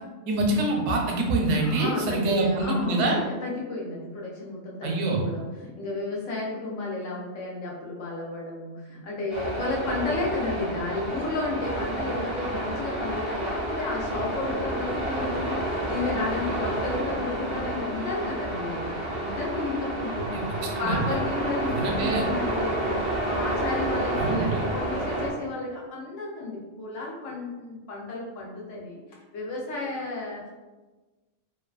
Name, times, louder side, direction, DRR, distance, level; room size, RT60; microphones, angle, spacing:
voice 1, 0.3-3.2 4.8-5.2 20.3-20.4 20.7-21.0 21.7-22.2 24.2-24.6, right 2 dB, 80° right, 0 dB, 0.9 m, -25 dB
voice 2, 1.6-23.0 23.2-29.0 29.3-30.5, left 3 dB, 90° left, -3 dB, 1.0 m, -32 dB
sound 1, 9.3-25.3, right 1 dB, 35° right, 0.5 m, -30 dB
2.6 x 2.2 x 2.3 m, 1.2 s
omnidirectional pair, 1.2 m